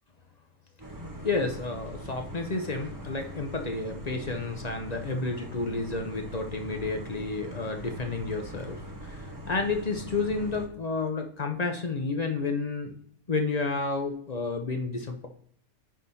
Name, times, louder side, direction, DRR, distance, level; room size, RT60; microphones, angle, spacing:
sound 1, 0.8-10.7, equal, 15° right, 0.8 m, -42 dB
voice 1, 1.2-12.9 13.3-15.3, left 3 dB, 40° left, 5 dB, 0.6 m, -31 dB
10.0 x 3.8 x 4.1 m, 0.63 s
omnidirectional pair, 1.6 m